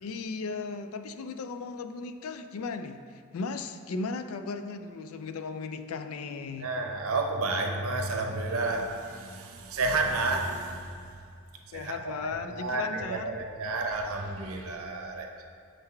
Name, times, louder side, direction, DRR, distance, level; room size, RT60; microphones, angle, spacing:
voice 1, 0.0-6.7 11.7-13.4, left 4 dB, 70° left, 8 dB, 0.4 m, -36 dB
voice 2, 6.6-10.9 11.7-15.4, right 3 dB, 75° right, 3 dB, 0.7 m, -31 dB
6.7 x 3.8 x 4.4 m, 2.3 s
head